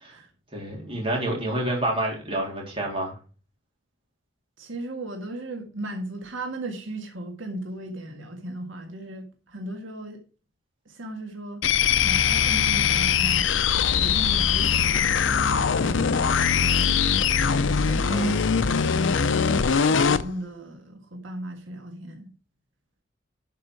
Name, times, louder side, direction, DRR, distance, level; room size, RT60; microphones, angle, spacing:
voice 1, 0.5-3.2 18.1-18.4, right 1 dB, 30° right, 3.5 m, -28 dB
voice 2, 4.6-10.2 10.9-11.6 12.0-13.6 13.9-15.1 15.4-17.1 17.8-18.4 18.7-18.9 19.3-22.3, right 1 dB, 85° right, 1.8 m, -36 dB
sound 1, 11.6-20.3, left 7 dB, 80° left, 0.6 m, -22 dB
11.5 x 5.4 x 4.7 m
head